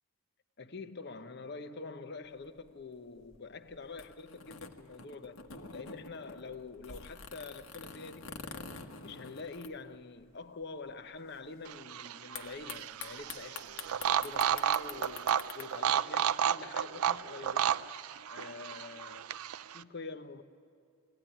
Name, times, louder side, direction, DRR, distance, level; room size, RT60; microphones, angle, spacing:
voice 1, 0.6-17.8 18.3-19.3 19.7-20.4, left 4 dB, 50° left, 0.8 m, -46 dB
sound 1, 2.3-10.4 10.6-10.7 10.9-11.3 12.4-15.7, left 5 dB, 75° left, 1.3 m, -47 dB
sound 2, 11.7-19.8, right 9 dB, 85° right, 0.4 m, -32 dB
22.5 x 17.5 x 10.0 m
head